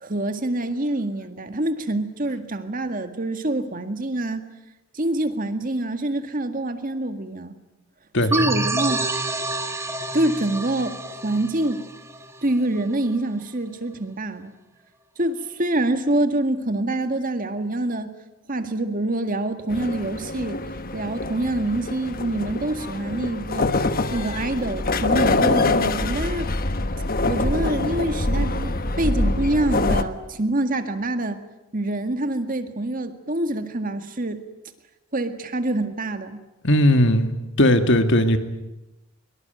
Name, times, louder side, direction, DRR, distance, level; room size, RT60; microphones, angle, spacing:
voice 1, 0.0-4.4 4.9-7.6 8.3-9.0 10.1-11.0 11.2-11.8 12.4-14.5 15.2-18.1 18.5-20.6 20.9-23.7 24.1-26.5 27.3-31.4 31.7-34.4 35.1-36.4, right 1 dB, 40° right, 8 dB, 1.9 m, -25 dB
sound 1, 8.3-12.8, right 2 dB, 10° right, 1.6 m, -28 dB
sound 2, 19.7-30.0, left 2 dB, 40° left, 1.2 m, -25 dB
voice 2, 36.6-37.3 37.6-38.4, left 1 dB, 55° left, 8 dB, 2.2 m, -17 dB
24.0 x 23.5 x 9.2 m, 0.98 s
head